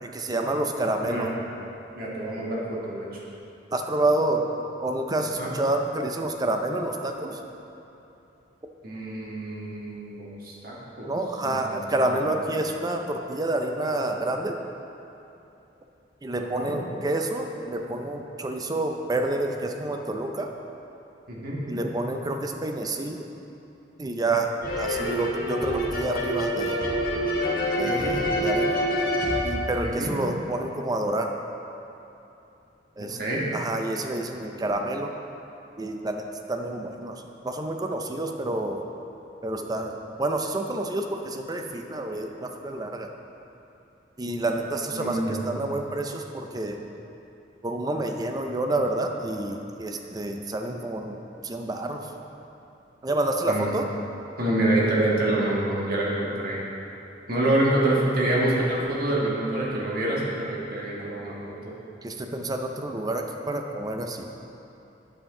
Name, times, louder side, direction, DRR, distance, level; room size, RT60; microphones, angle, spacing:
voice 1, 0.0-1.3 3.7-4.5 4.8-7.4 11.1-14.6 16.2-20.5 21.7-23.3 24.0-26.8 27.8-28.8 29.4-31.3 33.0-33.2 33.5-35.1 35.8-38.8 39.4-39.9 40.2-43.1 44.2-46.8 47.6-51.2 51.4-52.1 53.0-53.9 62.0-64.3, right 2 dB, 20° right, 4 dB, 0.5 m, -28 dB
voice 2, 1.0-1.3 1.9-3.1 5.4-5.5 8.8-11.1 11.4-11.8 12.0-12.2 16.5-16.7 21.3-21.6 27.8-28.2 30.0-30.1 33.0-33.4 44.9-45.4 53.5-53.7 54.4-56.6 57.3-61.3 61.6-61.7, right 1 dB, 55° right, -5 dB, 1.6 m, -26 dB
sound 1, 24.6-30.4, equal, 55° left, 1.5 m, -26 dB
8.6 x 7.1 x 3.7 m, 2.9 s
head